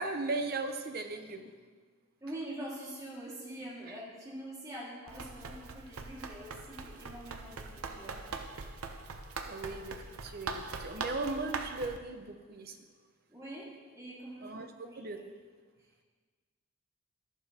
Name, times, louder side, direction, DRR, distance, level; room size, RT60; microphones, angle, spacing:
voice 1, 0.0-1.5 9.5-12.8 14.4-15.3, right 3 dB, 45° right, 6 dB, 0.8 m, -37 dB
voice 2, 2.2-8.2 13.3-15.1 15.4-15.5, right 1 dB, 15° right, -6 dB, 2.0 m, -45 dB
Run, 5.1-12.0, right 4 dB, 80° right, 0.7 m, -42 dB
11.5 x 11.5 x 2.9 m, 1.5 s
head